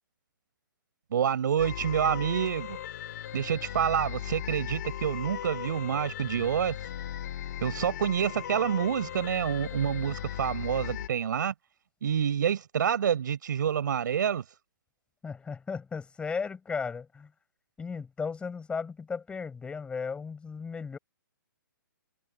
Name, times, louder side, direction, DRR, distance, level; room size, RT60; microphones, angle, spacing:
voice 1, 1.1-2.8 3.3-6.7 7.6-11.5 12.0-14.4, right 8 dB, 60° right, 5.6 m, -28 dB
sound 1, 1.6-11.1, left 11 dB, 50° left, 2.9 m, -38 dB
voice 2, 15.2-17.3 17.8-21.0, left 5 dB, 10° left, 5.7 m, -35 dB
hypercardioid pair, 135°, 12 cm